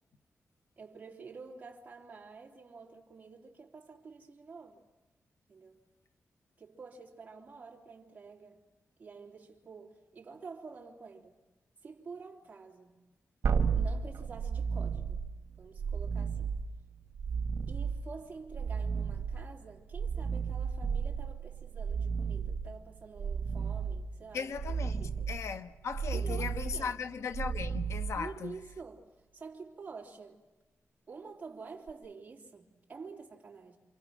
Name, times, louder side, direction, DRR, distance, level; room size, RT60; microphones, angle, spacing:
voice 1, 0.8-4.8 5.5-5.8 6.6-8.6 9.0-11.4 11.8-13.0 13.7-15.3 15.6-16.6 17.7-24.5 25.0-25.2 26.1-27.0 28.1-30.4 31.1-33.8, right 4 dB, 30° right, 3.2 m, -48 dB
sound 1, 13.4-28.7 31.9-32.0, right 6 dB, 65° right, 2.3 m, -34 dB
voice 2, 24.3-28.6, left 6 dB, 70° left, 0.8 m, -38 dB
28.5 x 27.5 x 6.2 m
wide cardioid pair, 170°, 5 cm